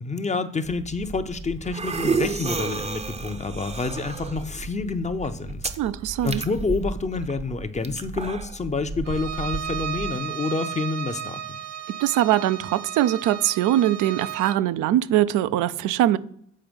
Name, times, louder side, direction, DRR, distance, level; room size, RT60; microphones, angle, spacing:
voice 1, 0.0-5.6 6.2-11.6, left 3 dB, 25° left, 0.6 m, -28 dB
sound 1, 0.6-10.1, right 4 dB, 20° right, 0.6 m, -32 dB
voice 2, 5.8-6.4 12.0-16.2, right 13 dB, 90° right, 0.5 m, -22 dB
Bowed string instrument, 9.0-14.7, right 9 dB, 55° right, 0.8 m, -34 dB
7.5 x 4.3 x 5.2 m
cardioid pair, 90°, 30 cm